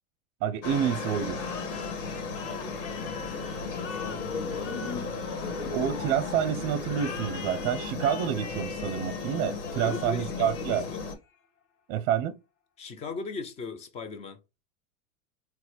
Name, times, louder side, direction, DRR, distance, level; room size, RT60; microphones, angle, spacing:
voice 1, 0.4-1.4 5.7-10.8 11.9-12.4, right 9 dB, 50° right, 0.6 m, -28 dB
Aircraft, 0.6-11.1, left 4 dB, 55° left, 1.3 m, -36 dB
sound 1, 1.3-6.1 6.9-11.3, left 6 dB, 35° left, 0.8 m, -44 dB
voice 2, 2.4-2.9 3.8-4.9 5.4-6.2 9.8-11.0 12.8-14.4, left 4 dB, 15° left, 0.3 m, -39 dB
sound 2, 2.9-7.9, left 5 dB, 80° left, 1.1 m, -40 dB
4.0 x 2.1 x 3.1 m
hypercardioid pair, 115°, 43 cm